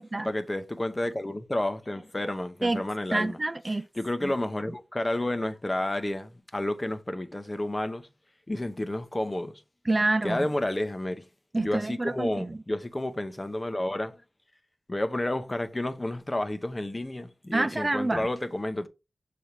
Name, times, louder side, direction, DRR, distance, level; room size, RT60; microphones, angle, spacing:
voice 1, 0.2-3.4 4.0-8.1 8.5-9.6 10.2-11.3 11.6-14.2 14.9-18.9, left 1 dB, 25° left, 0.8 m, -30 dB
voice 2, 3.1-3.8 4.2-4.3 9.9-10.4 11.5-12.5 17.5-18.3, right 2 dB, 35° right, 0.5 m, -27 dB
6.2 x 3.4 x 4.4 m
cardioid pair, 45°, 0 cm